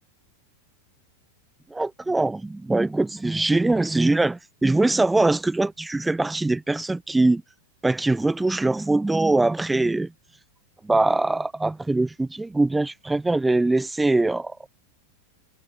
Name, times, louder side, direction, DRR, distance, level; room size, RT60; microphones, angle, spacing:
voice 1, 1.7-7.4 7.8-10.1 10.8-14.7, right 2 dB, 5° right, 1.5 m, -22 dB
supercardioid pair, 165°, 0 cm